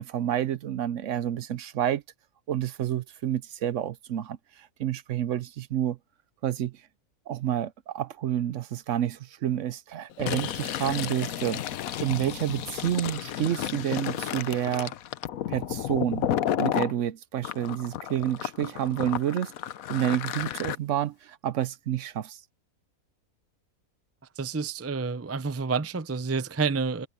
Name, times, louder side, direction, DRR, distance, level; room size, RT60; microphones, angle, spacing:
voice 1, 0.0-2.0 2.5-6.0 6.4-6.8 7.3-11.6 12.0-14.9 15.5-16.3 16.6-19.5 19.9-22.4, right 11 dB, 65° right, 0.9 m, -29 dB
Fill (with liquid), 10.1-16.9 17.4-20.8, left 11 dB, 75° left, 1.2 m, -32 dB
voice 2, 24.4-27.1, right 5 dB, 25° right, 0.3 m, -29 dB
omnidirectional pair, 1.5 m